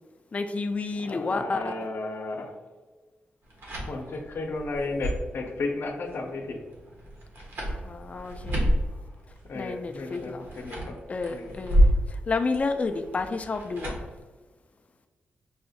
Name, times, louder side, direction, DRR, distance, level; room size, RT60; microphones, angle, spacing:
voice 1, 0.3-1.7 7.8-8.7 9.5-10.5 11.1-13.9, left 3 dB, 35° left, 7 dB, 0.3 m, -30 dB
voice 2, 1.0-2.5 3.9-6.6 9.5-11.0 11.3-11.5, left 3 dB, 65° left, 3 dB, 0.7 m, -33 dB
sound 1, 3.4-14.2, equal, 75° right, 1.1 m, -30 dB
5.4 x 2.1 x 2.7 m, 1.3 s
cardioid pair, 70°, 4 cm